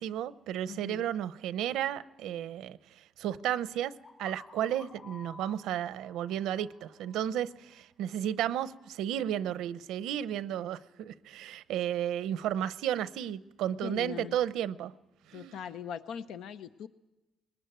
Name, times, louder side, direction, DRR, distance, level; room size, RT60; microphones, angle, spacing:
voice 1, 0.0-3.9 4.2-14.9 15.3-15.6, right 11 dB, 90° right, 0.7 m, -33 dB
voice 2, 0.7-1.1 13.8-14.4 15.3-16.9, left 8 dB, 80° left, 0.7 m, -41 dB
sound 1, 4.0-7.8, left 3 dB, 25° left, 2.5 m, -52 dB
21.0 x 19.0 x 9.2 m
cardioid pair, 90°, 0 cm